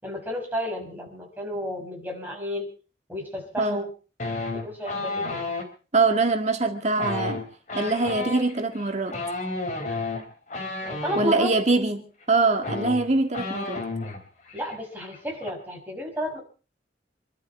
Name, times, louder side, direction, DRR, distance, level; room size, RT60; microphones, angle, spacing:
voice 1, 0.0-2.7 3.1-3.9 4.5-5.5 10.8-11.5 14.5-16.4, equal, 10° right, 6.2 m, -32 dB
sound 1, 4.2-5.7 6.9-11.3 12.2-12.3 12.5-14.2 14.5-14.8 15.0-15.5, left 2 dB, 45° left, 3.9 m, -32 dB
voice 2, 5.9-7.4 7.7-9.2 11.2-13.8, right 3 dB, 40° right, 1.8 m, -23 dB
27.0 x 12.0 x 4.4 m
head